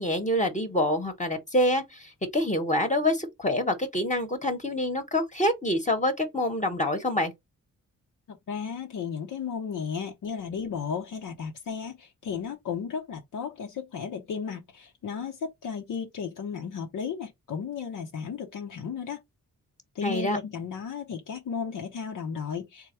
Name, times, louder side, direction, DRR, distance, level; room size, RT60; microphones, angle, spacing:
voice 1, 0.0-7.3 20.0-20.4, left 1 dB, 20° left, 1.0 m, -26 dB
voice 2, 8.3-19.2 19.9-22.9, left 6 dB, 70° left, 0.7 m, -34 dB
3.4 x 2.2 x 4.2 m
cardioid pair, 70°, 33 cm